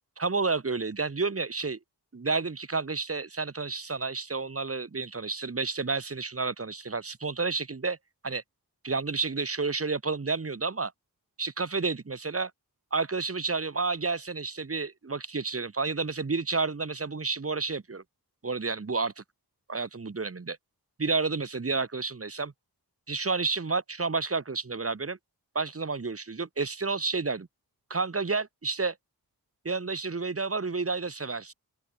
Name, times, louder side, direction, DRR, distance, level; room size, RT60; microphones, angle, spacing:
voice 1, 0.2-1.8 2.1-8.0 8.2-8.4 8.8-10.9 11.4-12.5 12.9-18.0 18.4-19.2 19.7-20.6 21.0-22.5 23.1-25.2 25.5-27.5 27.9-28.9 29.6-31.5, right 4 dB, 35° right, 1.3 m, -30 dB
open air
wide cardioid pair, 90°, 38 cm